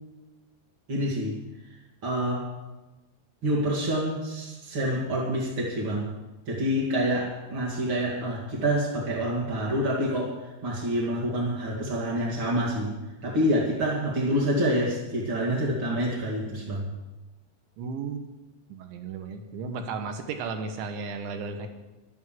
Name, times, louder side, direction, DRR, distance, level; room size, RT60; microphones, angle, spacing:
voice 1, 0.9-1.4 2.0-2.5 3.4-6.1 6.5-13.0 13.2-16.9, equal, 45° right, -5 dB, 1.7 m, -27 dB
voice 2, 17.8-18.3 18.7-21.7, right 4 dB, 70° right, 7 dB, 3.2 m, -34 dB
12.0 x 9.6 x 7.5 m, 1.1 s
omnidirectional pair, 5.8 m